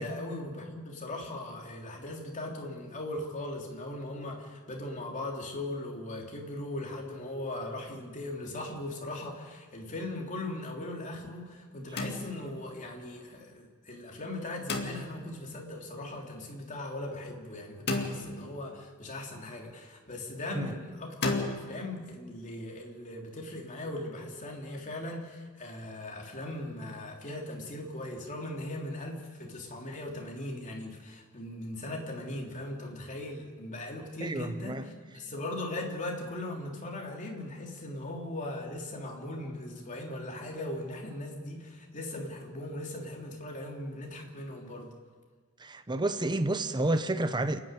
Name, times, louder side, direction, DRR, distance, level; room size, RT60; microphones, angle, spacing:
voice 1, 0.0-44.9, left 1 dB, 35° left, 3.3 m, -39 dB
sound 1, 12.0-12.7 14.7-15.4 17.9-18.8 21.2-21.6, left 2 dB, 50° left, 2.2 m, -33 dB
voice 2, 34.2-34.9 45.6-47.6, right 2 dB, 20° right, 0.8 m, -30 dB
29.0 x 9.8 x 9.3 m
head